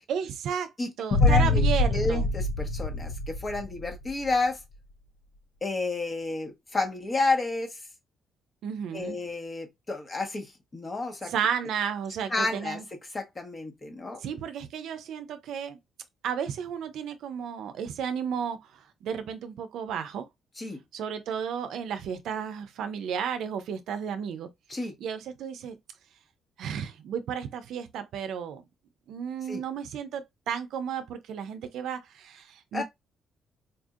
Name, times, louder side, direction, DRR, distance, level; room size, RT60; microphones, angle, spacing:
voice 1, 0.1-0.7 1.0-2.2 8.6-9.2 11.3-12.8 14.2-15.8 16.2-20.3 20.9-24.5 25.0-25.8 26.6-28.6 29.1-32.8, right 8 dB, 80° right, 0.6 m, -33 dB
Boom, 1.1-4.1, left 2 dB, 70° left, 0.6 m, -24 dB
voice 2, 1.2-1.6 1.9-4.6 5.6-7.8 8.9-11.3 12.3-12.8 13.1-14.2 20.6-20.8 24.7-24.9 29.5-29.6 32.7-32.8, left 3 dB, 30° left, 1.2 m, -30 dB
4.2 x 2.6 x 2.4 m
cardioid pair, 90°, 0 cm